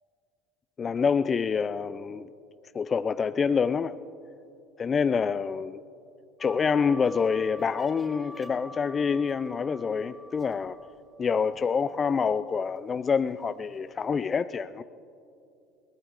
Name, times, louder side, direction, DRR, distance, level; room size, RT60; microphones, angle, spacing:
voice 1, 0.8-2.3 2.7-3.9 4.8-5.7 6.4-10.8 11.2-14.8, left 6 dB, 35° left, 12 dB, 0.4 m, -26 dB
sound 1, 6.4-12.6 12.9-14.0, equal, 10° right, 3.3 m, -48 dB
23.5 x 18.0 x 2.5 m, 2.6 s
hypercardioid pair, 80°, 0 cm